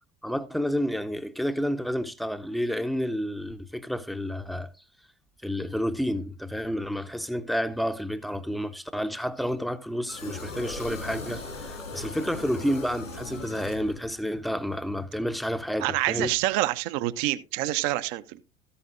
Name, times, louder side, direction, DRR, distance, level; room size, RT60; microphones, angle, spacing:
voice 1, 0.2-4.7 5.4-16.3, equal, ahead, 0.6 m, -30 dB
sound 1, 10.1-14.3, left 3 dB, 85° left, 3.0 m, -38 dB
voice 2, 15.8-18.4, right 16 dB, 50° right, 0.7 m, -27 dB
13.5 x 10.0 x 2.5 m
figure-of-eight pair, 75°, 39 cm